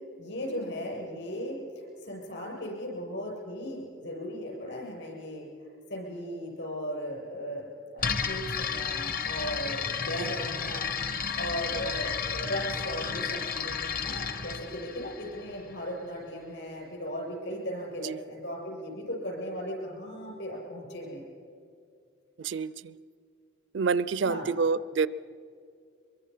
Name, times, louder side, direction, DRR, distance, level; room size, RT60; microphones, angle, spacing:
voice 1, 0.2-5.5 5.9-21.2 24.2-24.5, equal, 65° left, -1 dB, 7.6 m, -37 dB
sound 1, 8.0-15.8, left 6 dB, 45° left, 0.9 m, -32 dB
voice 2, 22.4-22.9 23.7-25.1, right 5 dB, 65° right, 18 dB, 0.4 m, -28 dB
23.5 x 23.0 x 5.6 m, 2.3 s
head